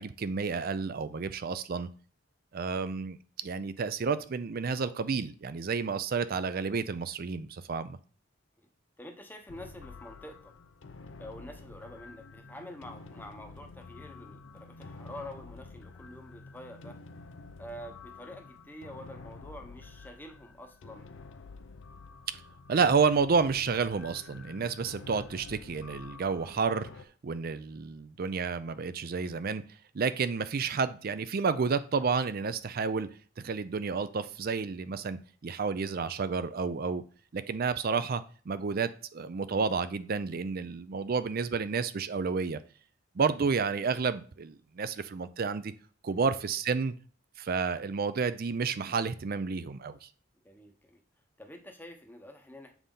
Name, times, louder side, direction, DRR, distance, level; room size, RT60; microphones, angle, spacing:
voice 1, 0.0-1.9 2.5-8.0 22.7-26.9 27.2-29.6 29.9-33.1 33.4-37.0 37.3-42.6 43.2-45.7 46.0-46.9 47.4-50.1, right 5 dB, 50° right, 13 dB, 0.4 m, -30 dB
voice 2, 9.0-10.5 11.2-17.0 17.6-21.1 46.1-46.3 50.4-51.0 51.4-52.7, left 1 dB, 10° left, 4 dB, 0.8 m, -47 dB
sound 1, 9.5-27.0, left 3 dB, 70° left, 0.5 m, -49 dB
7.1 x 4.1 x 3.8 m, 0.41 s
head